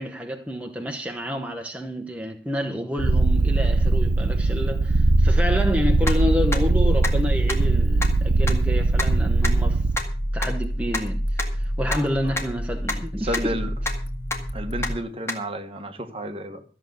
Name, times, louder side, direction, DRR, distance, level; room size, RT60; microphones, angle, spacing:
voice 1, 0.0-9.8 10.3-13.6, left 1 dB, 10° right, 1.0 m, -29 dB
Purr, 3.0-10.0, right 2 dB, 85° right, 0.7 m, -20 dB
sound 1, 5.6-5.7 6.1-6.2 6.5-6.6 7.0-7.1 7.5-7.6 8.0-8.1 8.5-8.6 9.0-9.1 9.4-9.5 10.0-10.1 10.4-10.5 10.9-11.0 11.4-11.5 11.9-12.0 12.4-12.5 12.9-13.0 13.3-13.5 13.9-14.0 14.3-14.4 14.8-14.9 15.3-15.4, left 2 dB, 15° left, 1.9 m, -26 dB
sound 2, 5.9-15.0, equal, 80° left, 2.3 m, -30 dB
voice 2, 13.2-13.7 14.5-16.6, equal, 30° right, 1.4 m, -31 dB
14.0 x 7.8 x 6.9 m
head